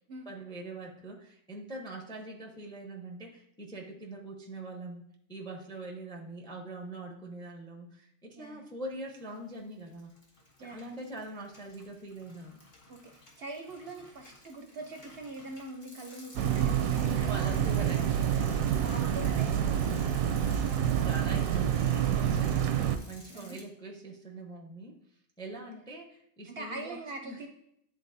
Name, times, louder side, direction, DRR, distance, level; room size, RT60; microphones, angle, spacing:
voice 1, 0.3-5.0 5.3-10.1 10.6-12.6 17.3-18.2 19.9-22.8 23.1-25.0 25.4-27.4, right 2 dB, 5° left, 1 dB, 0.6 m, -43 dB
voice 2, 8.4-8.7 10.6-10.9 12.9-18.0 18.8-19.6 21.1-21.6 23.3-23.6 25.6-25.7 26.5-27.5, right 2 dB, 55° right, 3 dB, 0.7 m, -43 dB
Bicycle, 9.2-9.6 9.9-23.6, left 2 dB, 35° left, 1.1 m, -53 dB
sound 1, 16.4-23.0, right 9 dB, 90° right, 1.0 m, -28 dB
10.0 x 3.8 x 2.6 m, 0.74 s
omnidirectional pair, 1.4 m